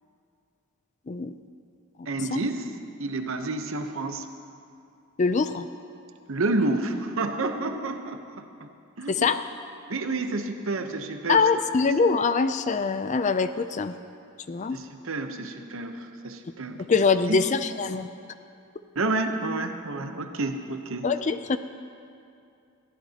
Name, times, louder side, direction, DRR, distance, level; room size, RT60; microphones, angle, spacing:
voice 1, 2.1-2.7 3.0-4.3 6.3-8.7 9.0-9.2 9.9-11.5 14.7-16.8 17.3-17.4 18.9-21.1, right 2 dB, 65° right, 6 dB, 0.9 m, -29 dB
voice 2, 5.2-5.7 9.1-9.4 11.3-13.9 14.5-14.8 16.9-18.1 21.0-21.6, left 4 dB, 35° left, 11 dB, 0.4 m, -23 dB
21.5 x 14.5 x 2.9 m, 2.5 s
head